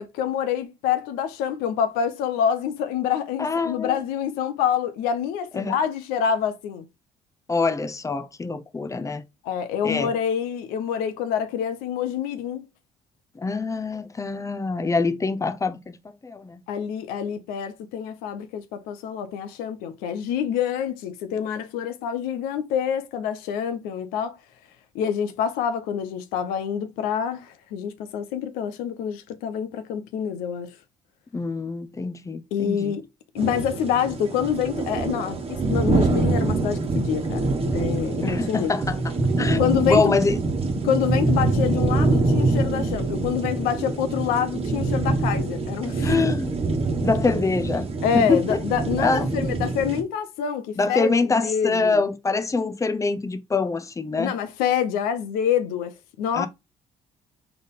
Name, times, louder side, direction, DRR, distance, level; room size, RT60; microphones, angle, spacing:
voice 1, 0.0-6.9 9.4-12.6 16.7-24.4 24.9-30.8 32.5-33.1 33.3-38.7 39.6-40.2 40.8-46.2 48.0-52.0 54.2-56.5, left 8 dB, 80° left, 0.7 m, -26 dB
voice 2, 3.4-4.0 5.5-5.8 7.5-9.2 9.8-10.1 13.4-16.0 16.2-16.6 31.3-32.9 38.2-39.0 39.4-40.4 46.0-46.5 47.0-47.9 48.1-48.6 49.0-49.3 50.8-54.3 56.3-56.5, left 4 dB, 20° left, 0.7 m, -24 dB
sound 1, 33.4-50.0, right 3 dB, 40° right, 1.3 m, -25 dB
4.0 x 3.5 x 3.7 m
hypercardioid pair, 55°, 15 cm